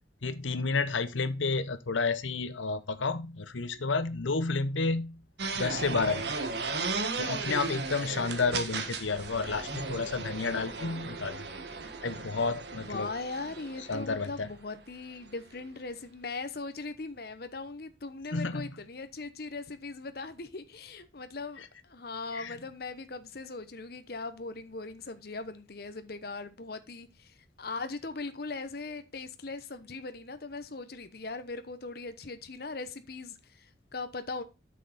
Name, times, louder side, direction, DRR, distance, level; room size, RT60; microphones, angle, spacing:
voice 1, 0.2-5.2 5.5-6.3 7.2-11.4 12.0-13.1 13.9-14.5 18.3-18.7 22.3-22.6, left 4 dB, 90° left, 0.9 m, -31 dB
sound 1, 5.4-14.4, right 4 dB, 65° right, 1.5 m, -36 dB
voice 2, 12.7-34.4, left 3 dB, 55° left, 0.9 m, -40 dB
8.2 x 6.6 x 4.1 m
head